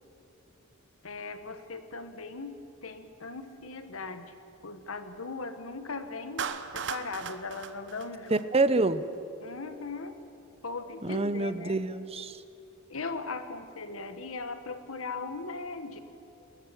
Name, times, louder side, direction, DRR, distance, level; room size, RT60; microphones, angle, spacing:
voice 1, 1.0-4.3 4.6-8.5 9.4-10.2 10.6-11.8 12.9-16.0, left 3 dB, 80° left, 9 dB, 1.5 m, -39 dB
Clapping, 6.4-8.8, right 6 dB, 60° right, 1.0 m, -37 dB
voice 2, 8.3-9.0 11.0-12.4, right 3 dB, 30° right, 13 dB, 0.7 m, -27 dB
20.5 x 14.0 x 9.9 m, 2.7 s
head